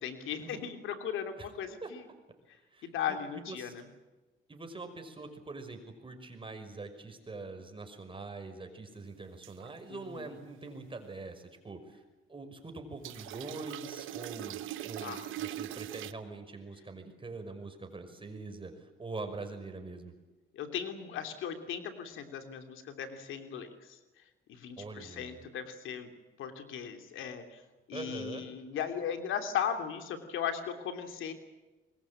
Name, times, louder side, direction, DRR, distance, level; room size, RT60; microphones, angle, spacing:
voice 1, 0.0-2.0 2.8-3.8 9.9-10.3 15.0-15.3 20.5-24.0 24.5-26.1 26.4-27.6 27.9-31.3, left 8 dB, 85° left, 7 dB, 3.2 m, -37 dB
voice 2, 2.7-3.7 4.5-12.0 12.3-20.1 24.8-25.4 27.9-28.5, right 3 dB, 25° right, 6 dB, 5.7 m, -44 dB
sound 1, 9.4-9.7 13.0-16.1, right 13 dB, 85° right, 1.0 m, -41 dB
25.0 x 21.5 x 8.7 m, 1.1 s
cardioid pair, 90°, 20 cm